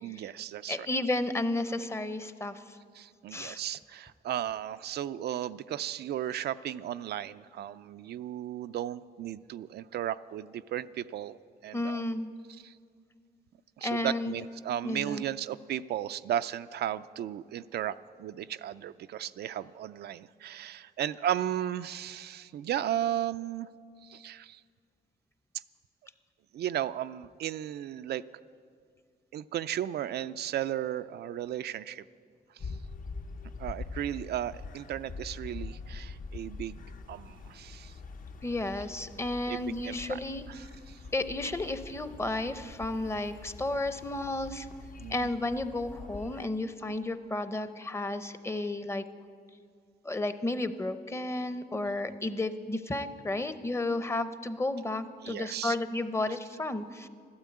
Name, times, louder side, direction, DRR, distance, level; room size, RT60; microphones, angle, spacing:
voice 1, 0.0-0.9 2.9-12.0 12.6-12.8 13.8-23.7 24.0-24.6 26.5-28.2 29.3-32.0 32.5-32.8 33.6-36.8 37.1-37.9 39.5-39.6 39.8-40.2 40.5-41.0 45.0-45.3 55.2-55.8, right 11 dB, 85° right, 13 dB, 0.4 m, -35 dB
voice 2, 0.7-2.8 3.3-3.6 11.7-12.3 13.8-14.3 14.8-15.2 38.4-40.5 41.1-44.7 45.1-49.0 50.0-57.1, left 2 dB, 15° left, 11 dB, 0.6 m, -32 dB
sound 1, 32.6-46.5, left 4 dB, 55° left, 0.8 m, -44 dB
12.5 x 12.5 x 8.5 m, 2.1 s
wide cardioid pair, 135°, 16 cm